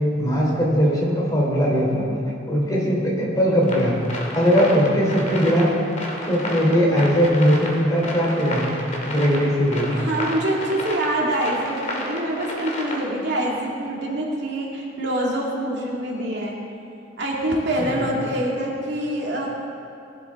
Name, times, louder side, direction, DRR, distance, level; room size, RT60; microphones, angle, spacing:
voice 1, 0.2-2.0 2.5-3.9 4.3-5.7 6.3-8.6 9.0-10.1 17.8-18.1, equal, 20° left, -4 dB, 3.3 m, -20 dB
sound 1, 3.6-13.4, left 1 dB, 40° left, 2.2 m, -31 dB
voice 2, 9.9-16.5 17.2-19.5, right 1 dB, 60° right, -3 dB, 2.2 m, -25 dB
20.0 x 11.5 x 3.7 m, 2.6 s
head